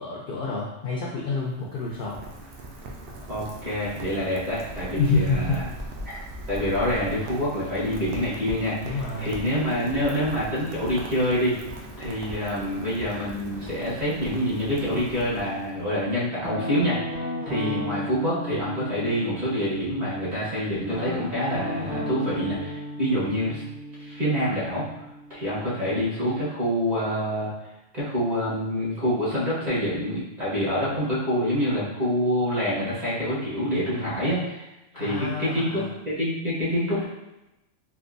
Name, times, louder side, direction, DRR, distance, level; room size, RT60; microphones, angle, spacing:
voice 1, 0.0-2.2 5.0-5.6 8.8-9.3 17.6-17.8 34.9-35.9, left 4 dB, 55° left, -3 dB, 0.6 m, -28 dB
Rain, 1.3-16.0, right 1 dB, 60° right, 0.7 m, -39 dB
voice 2, 3.3-5.6 6.0-6.2 6.5-11.6 12.0-23.6 24.0-24.9 25.3-27.5 27.9-34.7 34.9-37.1, equal, 35° right, -9 dB, 1.3 m, -26 dB
Guitar, 16.4-20.2 20.9-25.6, equal, 10° right, 0.4 m, -35 dB
3.5 x 2.7 x 2.6 m, 0.95 s
omnidirectional pair, 1.3 m